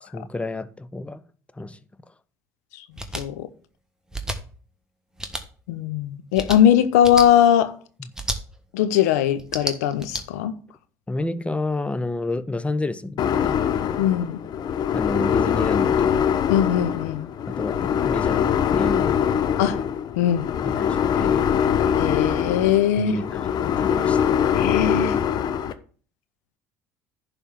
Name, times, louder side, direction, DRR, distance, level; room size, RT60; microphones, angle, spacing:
voice 1, 0.0-1.2 1.5-1.8 11.1-13.6 14.9-16.3 17.5-19.2 20.6-21.5 23.0-24.3, left 2 dB, 15° left, 0.8 m, -30 dB
sound 1, 3.0-3.2 4.1-4.4 5.2-5.4 6.3-6.6 7.0-7.3 8.1-8.4 9.4-10.2, right 1 dB, 5° right, 1.5 m, -30 dB
voice 2, 3.1-3.5 5.7-7.7 8.7-10.5 14.0-14.4 16.5-17.3 19.6-19.8 20.2-20.5 22.0-23.2 24.5-25.2, left 10 dB, 80° left, 0.8 m, -20 dB
sound 2, 13.2-25.7, left 8 dB, 50° left, 0.8 m, -23 dB
10.5 x 3.6 x 7.2 m
hypercardioid pair, 65°, 9 cm